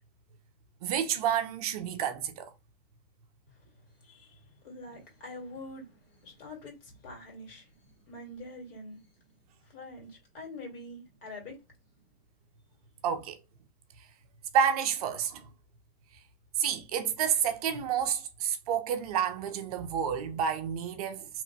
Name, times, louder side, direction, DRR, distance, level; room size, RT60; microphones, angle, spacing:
voice 1, 0.8-2.5 13.0-13.4 14.5-15.5 16.6-21.3, right 8 dB, 35° right, 0.4 m, -29 dB
voice 2, 4.0-7.7 8.1-9.0 9.6-11.6, left 2 dB, 60° left, 1.8 m, -45 dB
2.9 x 2.1 x 2.6 m
hypercardioid pair, 150°, 32 cm